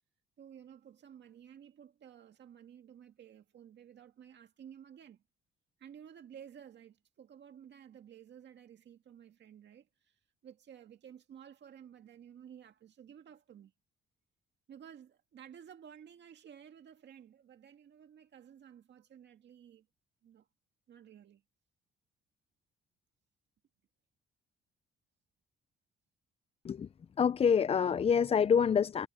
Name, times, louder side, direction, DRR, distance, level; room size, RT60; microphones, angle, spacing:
voice 1, 0.4-5.2 5.8-13.7 14.7-19.9 20.2-20.5 20.9-21.4, right 9 dB, 60° right, 2.0 m, -54 dB
voice 2, 27.2-29.1, left 7 dB, 30° left, 0.4 m, -26 dB
cardioid pair, 90°, 20 cm